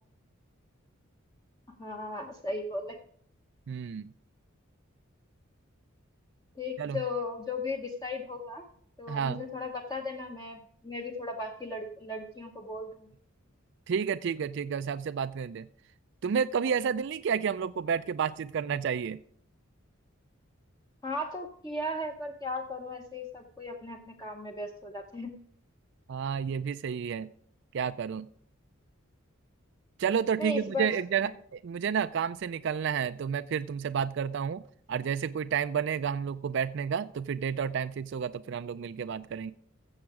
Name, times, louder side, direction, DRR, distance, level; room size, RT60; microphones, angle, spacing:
voice 1, 1.8-3.0 6.5-8.6 9.0-13.1 21.0-25.3 30.4-31.0 31.2-31.3, left 2 dB, 15° left, 2 dB, 0.9 m, -36 dB
voice 2, 3.7-4.1 6.8-7.0 9.1-9.4 13.9-15.6 16.2-19.2 26.1-27.3 27.7-28.3 30.0-34.6 34.9-39.5, right 7 dB, 55° right, 12 dB, 0.3 m, -30 dB
15.0 x 7.1 x 4.8 m, 0.62 s
head